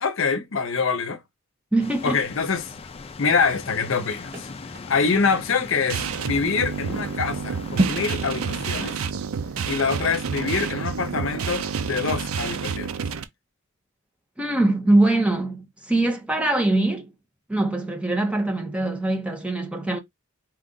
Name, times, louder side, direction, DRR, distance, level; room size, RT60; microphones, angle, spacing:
voice 1, 0.0-1.2 2.0-2.7 3.2-4.5 4.9-8.9 9.6-13.0, left 5 dB, 65° left, 0.7 m, -25 dB
voice 2, 1.7-2.2 14.4-17.1 17.5-20.0, right 2 dB, 5° right, 0.7 m, -22 dB
sound 1, 1.8-8.9, left 4 dB, 30° left, 0.4 m, -40 dB
sound 2, 3.4-12.0 12.4-12.5, right 2 dB, 45° right, 1.0 m, -34 dB
sound 3, 5.9-13.2, right 6 dB, 90° right, 0.5 m, -29 dB
4.5 x 2.5 x 3.8 m
head